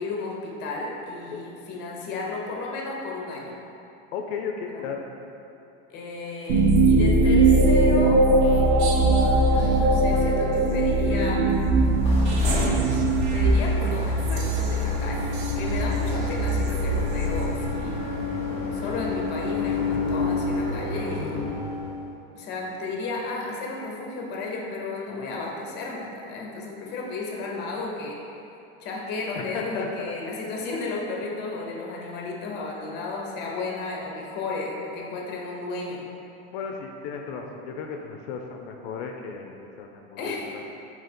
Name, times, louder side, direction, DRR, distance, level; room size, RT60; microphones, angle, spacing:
voice 1, 0.0-3.6 4.7-4.9 5.9-8.2 9.5-11.5 13.3-18.0 18.7-21.4 22.3-28.2 28.8-36.0 40.2-40.5, left 3 dB, 35° left, -1 dB, 0.7 m, -33 dB
voice 2, 4.1-5.1 29.3-30.1 36.5-40.6, left 5 dB, 80° left, 2 dB, 0.5 m, -35 dB
sound 1, 6.5-18.1, right 2 dB, 60° right, 0.5 m, -21 dB
sound 2, 11.7-22.0, left 3 dB, 20° left, 1.0 m, -30 dB
3.8 x 2.9 x 4.2 m, 2.8 s
supercardioid pair, 155°, 29 cm